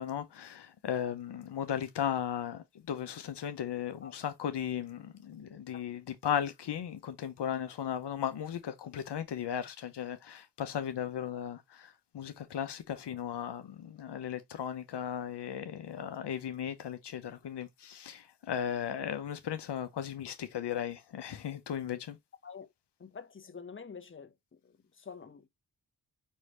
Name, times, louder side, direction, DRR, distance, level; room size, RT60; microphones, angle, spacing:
voice 1, 0.0-22.2, left 9 dB, 75° left, 0.8 m, -36 dB
voice 2, 23.0-24.3 24.6-25.5, left 6 dB, 30° left, 0.9 m, -47 dB
5.6 x 3.1 x 3.0 m
cardioid pair, 40°, 42 cm